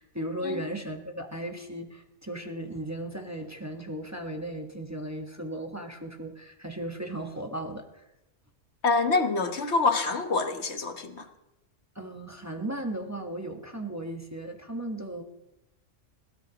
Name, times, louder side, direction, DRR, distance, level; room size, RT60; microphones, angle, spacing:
voice 1, 0.0-8.0 11.9-15.2, right 1 dB, 15° right, 3 dB, 1.3 m, -36 dB
voice 2, 8.8-11.3, left 3 dB, 60° left, 7 dB, 1.4 m, -26 dB
22.0 x 16.5 x 3.0 m, 0.92 s
omnidirectional pair, 1.3 m